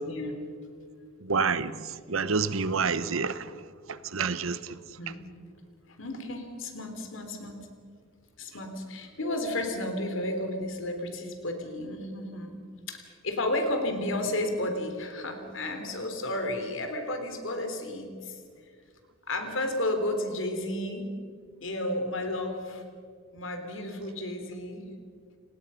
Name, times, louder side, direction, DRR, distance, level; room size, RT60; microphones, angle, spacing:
voice 1, 0.0-0.4 5.0-5.4 5.9-7.6 8.4-12.6 12.9-18.4 19.3-21.1 21.6-22.8 23.3-24.8, left 1 dB, 65° left, 3.4 m, -32 dB
voice 2, 1.2-3.5 3.9-4.8, right 5 dB, 75° right, 1.0 m, -28 dB
29.0 x 19.5 x 5.7 m
head